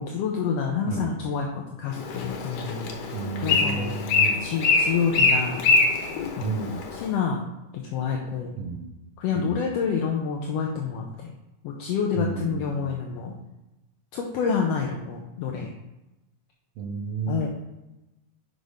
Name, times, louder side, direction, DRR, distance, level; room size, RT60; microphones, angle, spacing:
voice 1, 0.0-2.9 3.4-3.9 4.4-5.6 6.4-6.5 7.0-7.4 7.7-8.5 9.2-11.3 11.6-13.3 14.1-15.7 17.3-17.5, left 6 dB, 70° left, 0 dB, 1.6 m, -28 dB
Bird, 1.9-7.1, left 4 dB, 90° left, 2.6 m, -24 dB
voice 2, 3.1-4.4 6.4-6.8 8.6-8.9 9.4-9.6 12.2-13.0 16.8-17.5, right 5 dB, 70° right, 3 dB, 1.9 m, -31 dB
6.1 x 5.3 x 4.9 m, 0.97 s
omnidirectional pair, 3.5 m